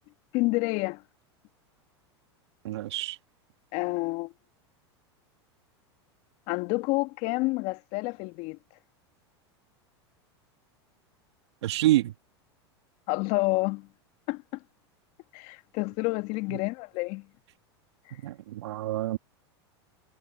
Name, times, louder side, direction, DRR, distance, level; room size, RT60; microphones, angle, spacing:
voice 1, 0.3-1.0 3.7-4.3 6.5-8.6 13.1-13.9 14.3-14.4 15.3-17.3, left 24 dB, 55° left, 1.5 m, -29 dB
voice 2, 2.6-3.2 11.6-12.1 18.2-19.2, right 15 dB, 75° right, 1.9 m, -27 dB
hypercardioid pair, 100°, 14 cm